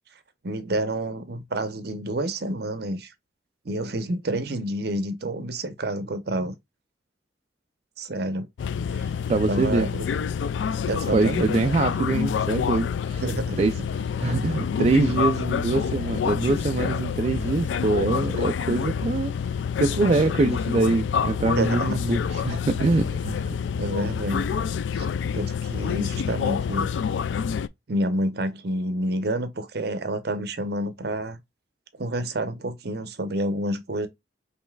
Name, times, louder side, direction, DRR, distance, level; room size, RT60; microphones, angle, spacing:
voice 1, 0.4-3.1 3.6-6.5 8.0-8.5 8.9-9.1 9.5-10.1 10.8-11.5 13.2-13.9 21.6-22.0 23.8-24.5 24.9-25.1 25.3-26.9 27.9-31.4 32.0-34.1, right 1 dB, 60° right, 0.8 m, -29 dB
sound 1, 8.6-27.7, left 7 dB, 80° left, 0.3 m, -27 dB
voice 2, 9.3-9.9 11.1-13.2 13.6-19.3 19.8-23.6, right 3 dB, 35° right, 0.3 m, -24 dB
5.4 x 3.1 x 2.2 m
head